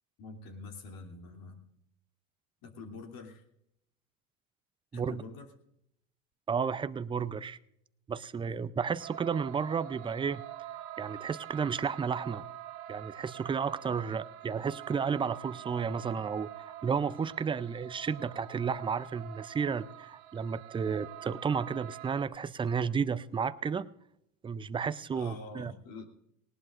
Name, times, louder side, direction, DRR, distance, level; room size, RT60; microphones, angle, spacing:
voice 1, 0.2-1.6 2.6-3.4 4.9-5.5 25.1-26.0, left 3 dB, 50° left, 4 dB, 2.9 m, -46 dB
voice 2, 6.5-7.6 8.1-10.4 11.0-12.4 12.9-16.5 16.8-23.9 24.4-25.7, right 6 dB, 10° right, 15 dB, 0.5 m, -32 dB
sound 1, 9.0-22.2, right 13 dB, 75° right, 1.7 m, -46 dB
19.0 x 18.5 x 2.5 m, 0.77 s
hypercardioid pair, 95°, 43 cm